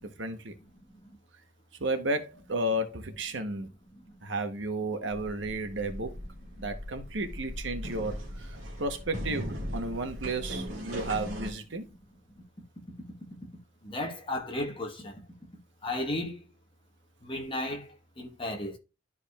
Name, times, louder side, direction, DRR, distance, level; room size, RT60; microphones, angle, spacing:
voice 1, 0.2-0.5 1.8-3.7 4.2-6.1 6.6-11.8, right 2 dB, 65° right, 1.0 m, -33 dB
sound 1, 5.1-11.5, equal, 85° right, 1.9 m, -38 dB
voice 2, 13.8-15.2 15.8-16.4 17.2-18.8, left 1 dB, 25° left, 1.2 m, -34 dB
12.0 x 4.8 x 2.4 m
head